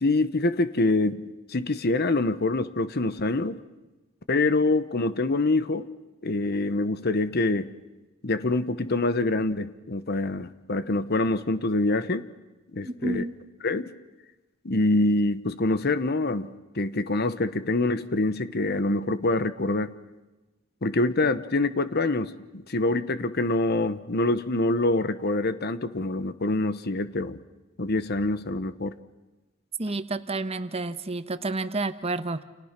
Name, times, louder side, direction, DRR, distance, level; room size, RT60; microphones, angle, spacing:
voice 1, 0.0-3.6 4.3-5.9 6.2-7.7 8.2-12.3 12.7-13.3 13.6-13.9 14.6-19.9 20.8-27.4 27.8-28.9, left 2 dB, 50° left, 13 dB, 1.0 m, -25 dB
voice 2, 12.8-13.3 29.8-32.4, right 2 dB, 30° right, 11 dB, 1.2 m, -30 dB
30.0 x 29.0 x 6.0 m, 1.1 s
head